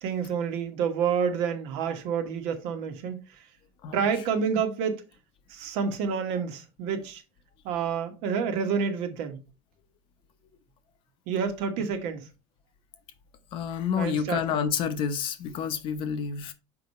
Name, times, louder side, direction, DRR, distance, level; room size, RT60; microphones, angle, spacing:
voice 1, 0.0-3.2 3.9-5.0 5.5-7.2 7.6-9.4 11.3-12.3 14.0-14.7, right 6 dB, 60° right, 1.4 m, -28 dB
voice 2, 13.5-16.5, left 7 dB, 45° left, 0.9 m, -29 dB
5.9 x 4.8 x 4.2 m
cardioid pair, 155°, 12 cm